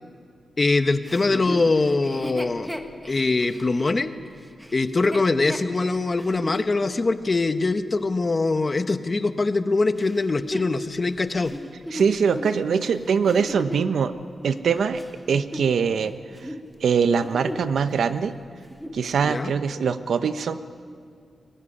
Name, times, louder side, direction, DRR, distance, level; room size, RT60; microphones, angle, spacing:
voice 1, 0.6-2.7 3.1-4.1 4.7-11.5 19.2-19.5, left 3 dB, 30° left, 10 dB, 1.0 m, -23 dB
Chuckle chortle, 1.0-6.6 7.2-7.3 10.0-13.9 14.6-16.0 16.3-16.6 17.1-17.8 18.1-18.2 18.6-19.1 19.7-19.8, equal, ahead, 1.4 m, -36 dB
voice 2, 11.9-14.1 14.4-15.0 15.3-16.1 16.8-18.3 18.9-20.6, right 6 dB, 80° right, 10 dB, 1.0 m, -22 dB
22.5 x 19.5 x 10.0 m, 2.2 s
wide cardioid pair, 155°, 0 cm